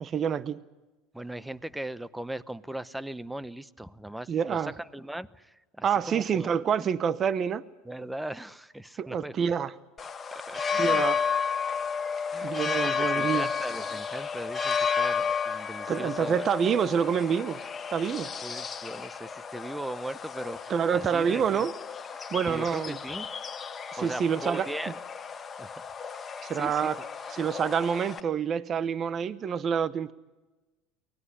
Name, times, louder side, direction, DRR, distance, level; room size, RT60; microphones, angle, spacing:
voice 1, 0.0-0.6 4.3-4.7 5.8-7.6 9.0-9.7 10.8-11.3 12.4-13.5 15.9-17.6 17.9-18.3 20.7-21.7 22.3-23.0 23.9-24.7 26.4-27.0 27.3-30.1, right 7 dB, 40° right, 16 dB, 0.9 m, -27 dB
voice 2, 1.1-6.9 7.8-9.5 10.0-11.1 12.3-16.5 18.4-21.7 22.5-23.3 24.0-24.9 25.6-25.7 26.5-26.9, right 1 dB, 5° right, 17 dB, 0.9 m, -39 dB
sound 1, 10.0-28.2, left 6 dB, 25° left, 1.5 m, -32 dB
24.0 x 19.0 x 9.8 m, 1.1 s
hypercardioid pair, 95°, 0 cm